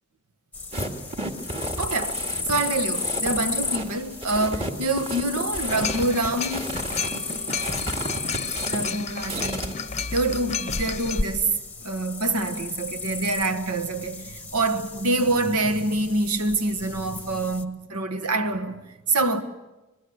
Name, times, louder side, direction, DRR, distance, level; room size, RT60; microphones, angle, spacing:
sound 1, 0.5-17.6, left 4 dB, 5° left, 1.0 m, -35 dB
sound 2, 0.7-9.7, right 1 dB, 25° right, 2.1 m, -33 dB
voice 1, 1.8-2.2 2.5-6.7 8.7-9.7 10.1-19.4, right 2 dB, 85° right, 1.6 m, -26 dB
sound 3, 5.7-11.2, left 5 dB, 30° left, 0.8 m, -31 dB
26.0 x 21.5 x 8.1 m
head